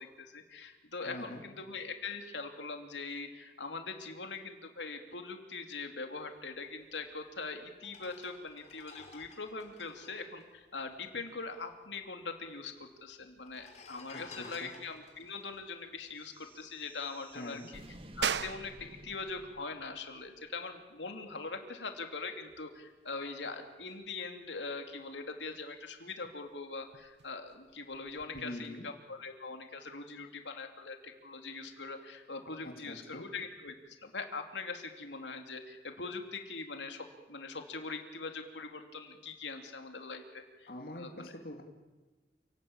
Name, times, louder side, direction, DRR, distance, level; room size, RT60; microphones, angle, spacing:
voice 1, 0.0-17.8 18.2-40.7 40.9-41.3, left 4 dB, 80° left, 5 dB, 2.9 m, -42 dB
voice 2, 1.0-1.4 14.1-14.7 17.3-17.7 28.3-28.8 32.6-33.2 40.7-41.6, left 1 dB, 55° left, 3 dB, 2.5 m, -44 dB
sound 1, 7.1-7.2 7.8-11.5 11.7-11.8 12.0-12.7 13.4-16.9 17.3-17.5, left 4 dB, 40° left, 3.6 m, -54 dB
Plasma Burst (mix), 16.2-20.5, right 1 dB, 30° right, 1.8 m, -54 dB
sound 2, 18.2-28.4, right 7 dB, 70° right, 0.9 m, -43 dB
28.5 x 18.5 x 8.9 m, 1.2 s
head